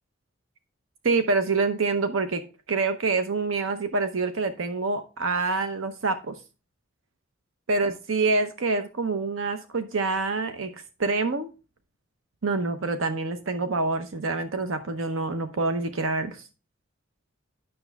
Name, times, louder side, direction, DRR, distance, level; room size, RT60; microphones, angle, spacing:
voice 1, 1.0-2.4 2.7-6.4 7.7-11.5 12.4-16.5, right 3 dB, 85° right, 8 dB, 0.8 m, -26 dB
9.5 x 6.6 x 3.4 m, 0.32 s
head